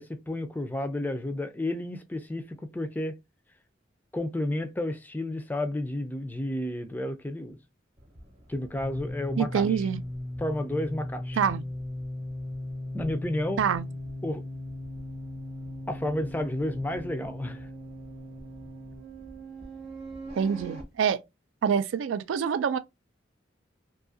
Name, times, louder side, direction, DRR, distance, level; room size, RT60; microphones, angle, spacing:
voice 1, 0.0-3.1 4.1-7.6 8.5-9.8 10.4-11.4 12.9-13.6 14.2-14.4 15.9-17.7, left 1 dB, 10° left, 0.3 m, -31 dB
sound 1, 8.0-20.8, left 1 dB, 30° right, 0.8 m, -38 dB
voice 2, 9.4-10.0 11.4-11.6 13.6-13.9 20.4-21.2 21.6-22.8, right 7 dB, 85° right, 0.3 m, -26 dB
2.6 x 2.4 x 2.5 m
head